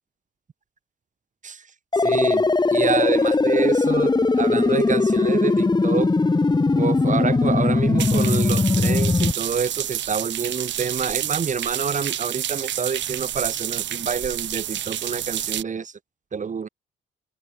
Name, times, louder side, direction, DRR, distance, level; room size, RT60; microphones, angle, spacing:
sound 1, 1.9-9.3, left 3 dB, 20° left, 3.0 m, -20 dB
voice 1, 2.0-6.1 6.7-15.9 16.3-16.7, right 6 dB, 40° right, 2.1 m, -27 dB
sound 2, 8.0-15.6, right 11 dB, 65° right, 1.3 m, -29 dB
cardioid pair, 90°, 20 cm